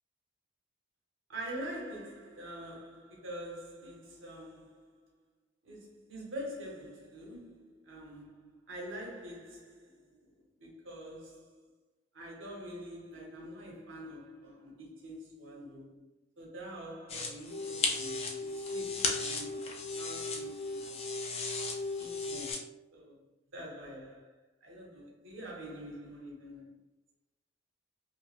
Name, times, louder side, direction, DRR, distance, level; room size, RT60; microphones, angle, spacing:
voice 1, 1.3-5.0 5.6-10.3 10.6-11.6 12.1-16.1 16.4-21.0 22.0-23.2 23.5-26.8, equal, 85° right, 1.0 m, -45 dB
sound 1, 17.1-22.6, left 4 dB, 30° left, 0.4 m, -37 dB
sound 2, 17.5-22.5, left 2 dB, 90° left, 0.7 m, -39 dB
3.1 x 2.3 x 2.4 m
head